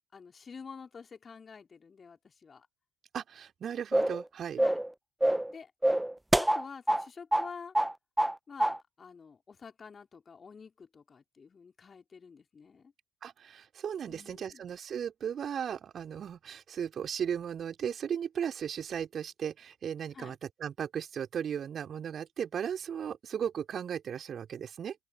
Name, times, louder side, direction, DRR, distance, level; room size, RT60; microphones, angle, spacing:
voice 1, 0.1-2.7 4.6-4.8 5.5-5.7 6.4-7.7 8.5-12.9 14.1-14.6 20.1-20.4, left 5 dB, 35° left, 3.4 m, -48 dB
voice 2, 3.1-4.6 13.2-25.0, right 8 dB, 45° right, 4.4 m, -36 dB
sound 1, 3.9-4.2 4.6-4.9 5.2-5.5 5.8-7.0 7.3-7.5 7.7-8.3 8.6-8.8, right 1 dB, 5° right, 0.8 m, -26 dB
open air
figure-of-eight pair, 50°, 0 cm